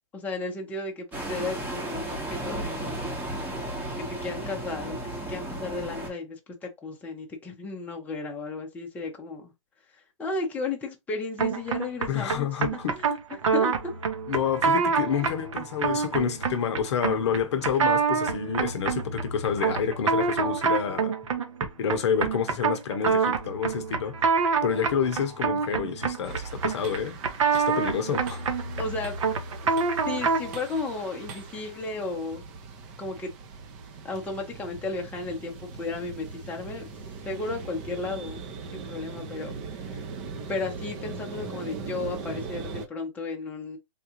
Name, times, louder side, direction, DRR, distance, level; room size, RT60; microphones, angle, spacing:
voice 1, 0.1-3.2 4.0-9.5 9.9-13.9 28.8-29.2 29.6-29.7 30.0-32.4 33.0-33.3 34.0-36.9 37.2-38.4 38.7-39.5 39.9-40.1 40.5-43.8, left 3 dB, 10° left, 0.7 m, -34 dB
sound 1, 1.1-6.1, right 1 dB, 10° right, 1.0 m, -34 dB
sound 2, 11.4-30.6, right 5 dB, 65° right, 0.9 m, -27 dB
voice 2, 12.1-13.0 14.3-21.1 21.8-24.3 24.6-27.2 27.5-28.4, left 7 dB, 55° left, 0.7 m, -28 dB
sound 3, 26.2-42.9, right 5 dB, 30° right, 0.7 m, -40 dB
3.5 x 2.4 x 2.9 m
hypercardioid pair, 135°, 17 cm